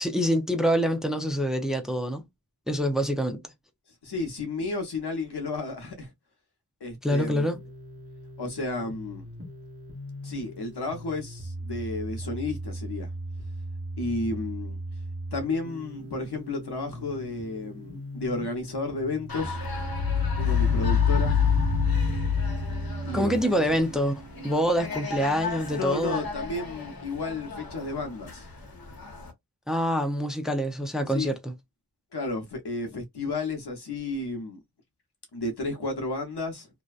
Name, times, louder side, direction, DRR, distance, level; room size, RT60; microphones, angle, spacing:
voice 1, 0.0-2.2 2.7-3.4 7.0-7.6 23.1-26.2 29.7-31.5, equal, ahead, 0.5 m, -26 dB
voice 2, 4.0-6.1 6.8-7.5 8.4-9.3 10.2-13.1 14.0-14.8 15.3-19.6 20.4-21.4 23.0-23.6 25.8-28.5 31.1-31.3 32.1-34.6 35.3-36.7, left 3 dB, 90° left, 0.8 m, -32 dB
sound 1, 7.4-23.4, right 1 dB, 35° right, 1.0 m, -38 dB
sound 2, 15.6-16.1 19.6-24.1 24.4-24.5, left 6 dB, 60° right, 0.5 m, -25 dB
sound 3, 19.3-29.3, left 4 dB, 65° left, 1.0 m, -38 dB
2.6 x 2.2 x 2.4 m
wide cardioid pair, 55°, 39 cm